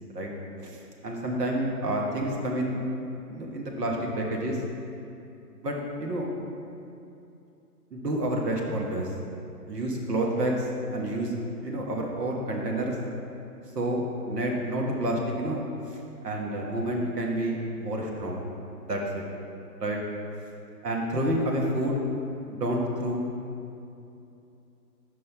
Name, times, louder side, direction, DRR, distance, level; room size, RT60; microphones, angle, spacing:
voice 1, 0.6-4.6 5.6-6.3 7.9-9.1 9.7-11.3 11.6-12.9 13.7-18.4 18.8-19.2 19.8-20.0 20.8-22.0 22.5-23.3, right 1 dB, 70° right, -1 dB, 1.4 m, -29 dB
5.4 x 4.6 x 5.7 m, 2.7 s
hypercardioid pair, 170°, 50 cm